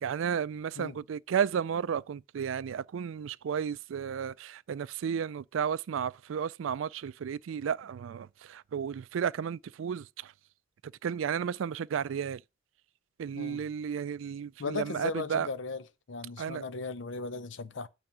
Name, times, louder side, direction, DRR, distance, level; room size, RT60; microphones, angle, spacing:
voice 1, 0.0-10.3 11.0-12.4 13.2-15.5 16.4-16.6, right 7 dB, 75° right, 0.3 m, -33 dB
voice 2, 13.3-13.7 14.6-15.8 16.1-17.9, left 4 dB, 65° left, 0.6 m, -37 dB
8.8 x 3.5 x 6.7 m
head